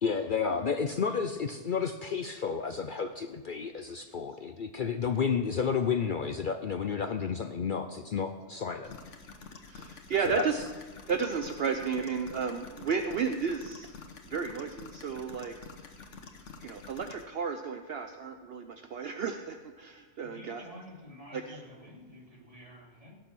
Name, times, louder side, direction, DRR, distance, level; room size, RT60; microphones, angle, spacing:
voice 1, 0.0-9.0 10.2-10.5, left 6 dB, 55° left, 8 dB, 0.7 m, -31 dB
sound 1, 8.8-17.2, left 4 dB, 90° left, 1.5 m, -48 dB
voice 2, 9.7-10.6 11.1-13.9 14.3-15.6 16.6-20.6 21.3-21.6, right 6 dB, 60° right, 6 dB, 0.9 m, -33 dB
voice 3, 20.2-23.1, left 1 dB, 30° right, -2 dB, 2.9 m, -50 dB
17.5 x 6.9 x 6.1 m, 1.5 s
omnidirectional pair, 1.2 m